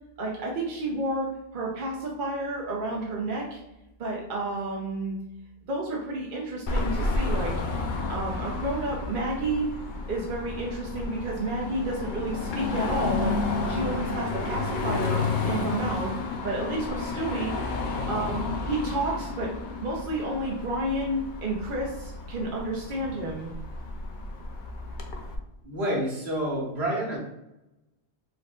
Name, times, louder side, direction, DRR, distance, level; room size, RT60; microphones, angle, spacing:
voice 1, 0.2-1.3 1.5-3.6 4.0-5.2 5.7-7.5 8.1-9.7 10.1-13.4 13.7-16.1 16.4-17.5 17.9-19.5 19.8-23.5, right 2 dB, 55° right, -2 dB, 0.9 m, -31 dB
Car passing by / Traffic noise roadway noise / Engine, 6.7-25.4, left 3 dB, 55° left, 0.7 m, -31 dB
voice 2, 25.6-27.2, right 1 dB, 70° right, -3 dB, 1.5 m, -28 dB
4.7 x 3.9 x 2.3 m, 0.90 s
omnidirectional pair, 1.1 m